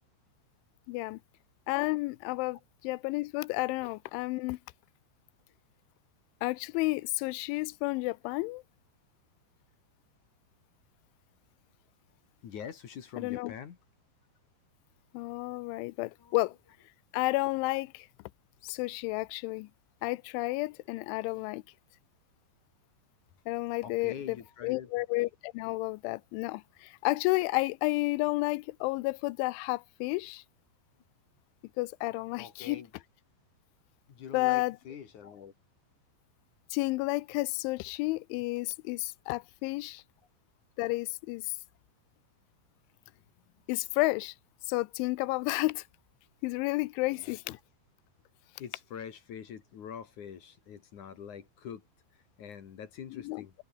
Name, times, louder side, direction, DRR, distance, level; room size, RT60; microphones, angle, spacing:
voice 1, 0.9-1.2 1.7-2.6 2.8-4.6 6.4-8.6 13.2-13.5 15.1-16.6 17.1-18.1 18.6-19.7 20.0-21.6 23.5-24.4 24.6-30.4 31.8-32.8 34.3-34.8 36.7-40.0 40.8-41.6 43.7-44.4 44.7-45.8 46.4-47.6 53.1-53.5, left 22 dB, 85° left, 3.0 m, -31 dB
voice 2, 12.4-13.8 16.2-16.4 23.8-25.0 32.4-32.9 34.1-35.5 47.1-47.6 48.6-51.9 52.1-53.5, left 8 dB, 50° left, 2.7 m, -45 dB
omnidirectional pair, 5.4 m